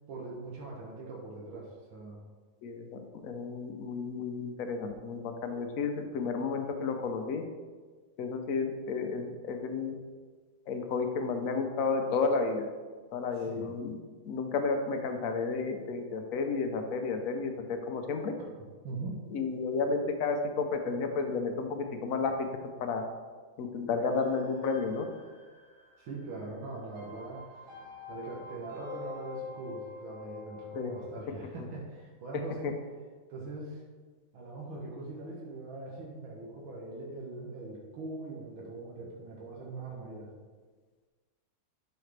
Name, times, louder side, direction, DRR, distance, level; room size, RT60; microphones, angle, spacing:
voice 1, 0.1-2.2 13.3-13.7 18.8-19.1 26.0-27.7 28.1-32.7 33.3-33.8 34.3-40.3, right 3 dB, 80° right, -3 dB, 1.9 m, -42 dB
voice 2, 2.6-7.4 8.2-9.9 10.7-12.7 13.1-14.0 14.3-18.3 19.3-22.5 22.8-23.0 23.6-25.0 30.7-30.9 32.6-32.7, left 4 dB, 65° left, 5 dB, 0.8 m, -32 dB
sound 1, 24.0-31.1, left 4 dB, 55° right, 1.9 m, -46 dB
11.5 x 4.4 x 3.3 m, 1.4 s
omnidirectional pair, 2.2 m